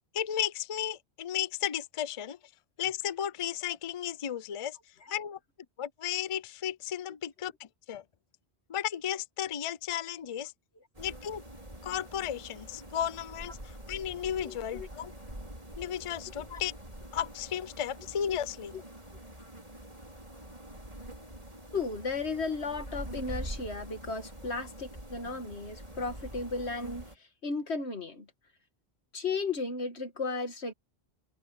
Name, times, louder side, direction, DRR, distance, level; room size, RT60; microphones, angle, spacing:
voice 1, 0.1-2.4 2.8-4.8 5.1-5.4 5.8-8.0 8.7-10.5 11.0-11.4 11.8-15.1 15.8-16.7 17.1-18.7, left 10 dB, 40° left, 0.5 m, -34 dB
sound 1, 10.9-27.2, right 1 dB, 35° right, 5.6 m, -45 dB
voice 2, 14.4-14.9 16.5-16.6 18.7-18.8 21.7-27.1 27.4-28.3 29.1-30.7, left 4 dB, 90° left, 2.2 m, -35 dB
omnidirectional pair, 1.1 m